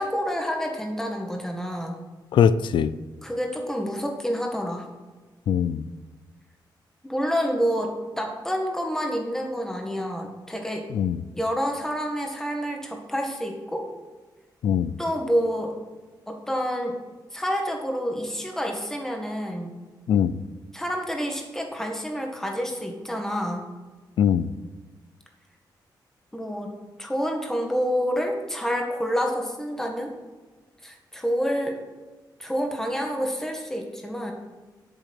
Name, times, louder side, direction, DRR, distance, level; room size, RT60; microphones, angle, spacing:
voice 1, 0.0-2.0 3.2-4.9 7.0-10.8 11.3-13.9 15.0-15.8 16.3-17.0 17.3-19.8 20.7-23.7 26.3-26.7 27.0-30.1 30.8-31.8 32.4-34.3, equal, 5° left, 2 dB, 1.8 m, -28 dB
voice 2, 2.3-2.9 5.5-5.8 10.9-11.2 14.6-14.9 20.1-20.4 24.2-24.5, left 8 dB, 85° left, 15 dB, 0.5 m, -21 dB
8.3 x 7.1 x 8.4 m, 1.3 s
wide cardioid pair, 160°, 8 cm